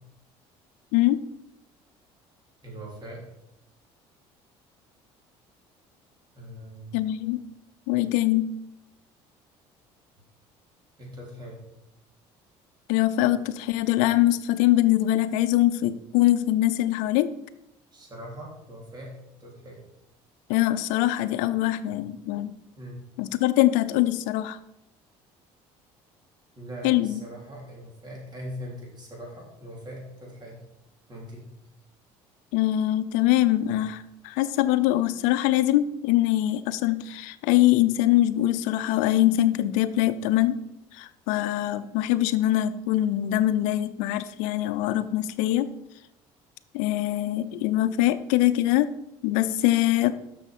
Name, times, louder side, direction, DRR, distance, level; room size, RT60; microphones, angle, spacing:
voice 1, 0.9-1.2 6.9-7.4 7.9-8.5 12.9-17.3 20.5-22.5 23.2-24.6 26.8-27.2 32.5-40.6 40.9-45.7 46.7-48.9 49.2-50.2, left 14 dB, 80° left, 13 dB, 0.6 m, -23 dB
voice 2, 2.6-3.2 6.3-7.0 11.0-11.6 17.9-19.1 19.4-19.8 22.7-23.0 26.5-30.6 31.1-31.5, equal, 35° right, -2 dB, 3.4 m, -41 dB
6.4 x 6.3 x 5.3 m, 0.83 s
supercardioid pair, 90°, 13 cm